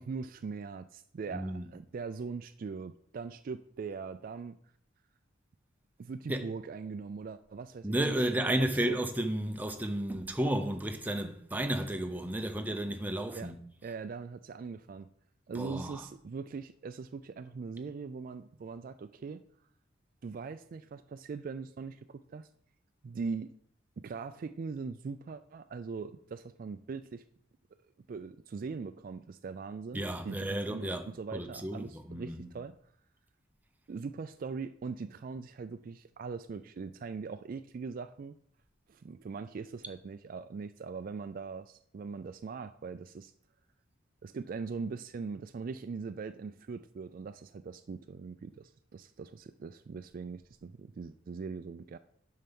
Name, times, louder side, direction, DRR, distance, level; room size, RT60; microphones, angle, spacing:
voice 1, 0.0-4.6 6.0-9.0 13.4-13.5 13.8-15.1 15.5-19.4 20.2-22.5 23.0-23.5 24.0-27.2 28.1-32.8 33.9-38.3 38.9-43.3 44.2-52.0, right 5 dB, 45° right, 0.3 m, -41 dB
voice 2, 1.3-1.7 6.3-6.4 7.8-13.6 15.5-16.0 29.9-31.0 31.3-32.5, right 1 dB, 10° right, 0.6 m, -32 dB
7.5 x 5.6 x 5.3 m
head